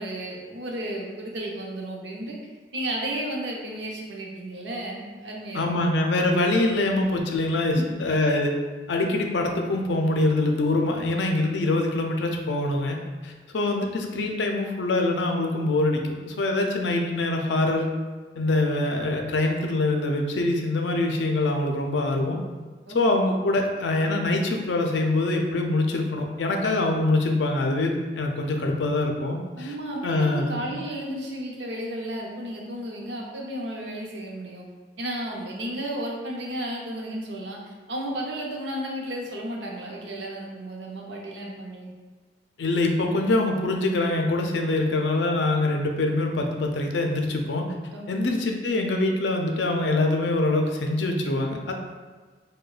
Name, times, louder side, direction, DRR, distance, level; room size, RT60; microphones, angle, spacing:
voice 1, 0.0-2.4 2.7-5.8 7.7-8.0 22.9-23.2 29.6-34.7 35.0-41.9 47.9-48.3, right 1 dB, 75° right, -1 dB, 0.7 m, -33 dB
voice 2, 5.5-8.5 8.9-13.0 13.2-17.9 18.4-22.4 22.9-29.7 30.0-30.8 42.6-47.7 48.1-51.7, left 2 dB, 80° left, 2 dB, 0.5 m, -24 dB
4.9 x 2.2 x 2.4 m, 1.4 s
head